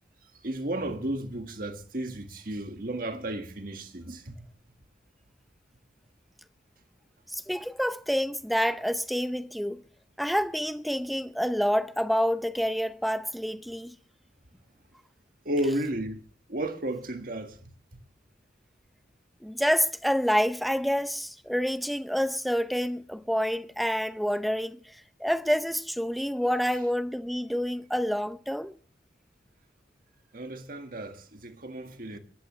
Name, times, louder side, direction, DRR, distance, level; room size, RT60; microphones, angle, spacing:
voice 1, 0.2-4.5 15.4-18.0 30.3-32.2, right 1 dB, 50° right, 1.7 m, -33 dB
voice 2, 7.3-9.8 10.2-13.9 19.4-28.7, equal, ahead, 0.6 m, -28 dB
22.0 x 14.0 x 3.2 m
head